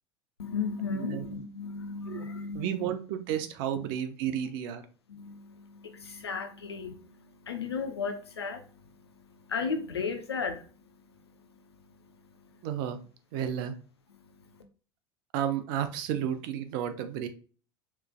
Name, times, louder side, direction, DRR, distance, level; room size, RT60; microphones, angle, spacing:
voice 1, 0.4-2.9 3.8-3.9 5.1-12.9 13.3-13.6 14.1-14.6, left 5 dB, 85° left, 0.7 m, -37 dB
voice 2, 2.5-4.8 12.6-13.0 13.3-13.7 15.3-17.3, right 9 dB, 55° right, 0.6 m, -32 dB
4.6 x 3.2 x 2.3 m
figure-of-eight pair, 75°, 13 cm